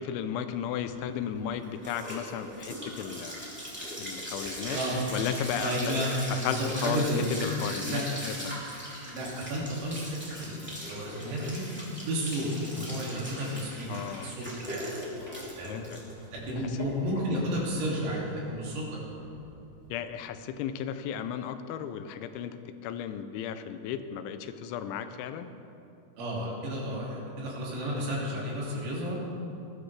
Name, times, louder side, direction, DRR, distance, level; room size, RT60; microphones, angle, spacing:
voice 1, 0.0-3.4 4.0-4.8 5.1-7.1 7.4-8.6 13.9-14.4 15.6-15.8 17.1-17.2 19.9-22.5 22.8-25.5, left 9 dB, 85° left, 10 dB, 3.0 m, -34 dB
sound 1, 0.8-19.9, equal, 5° right, 1.7 m, -40 dB
voice 2, 4.7-5.1 5.6-6.1 6.4-7.2 7.9-8.0 9.1-10.1 10.4-11.6 12.0-13.9 14.2-14.8 15.6-15.8 16.3-19.0 26.2-29.2, equal, 70° right, -5 dB, 4.6 m, -32 dB
19.0 x 12.5 x 3.3 m, 2.7 s
omnidirectional pair, 5.2 m